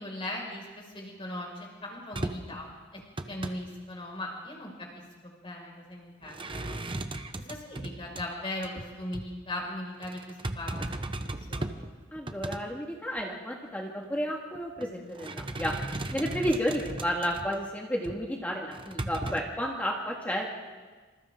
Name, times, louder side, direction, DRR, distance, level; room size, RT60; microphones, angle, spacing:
voice 1, 0.0-3.0 3.3-4.9 5.2-6.8 7.4-11.8 16.3-16.5, left 1 dB, 30° left, -1 dB, 5.9 m, -39 dB
sound 1, 2.1-2.6 3.0-3.6 6.2-8.2 8.6-8.9 9.1-9.3 10.0-11.9 12.2-12.6 13.2-13.3 14.5-14.9 15.1-17.6 18.0-18.2 18.7-19.4, right 2 dB, 25° right, 1.0 m, -36 dB
voice 2, 12.1-15.8 16.1-20.5, equal, 10° left, -1 dB, 2.0 m, -32 dB
27.0 x 26.5 x 3.9 m, 1.4 s
head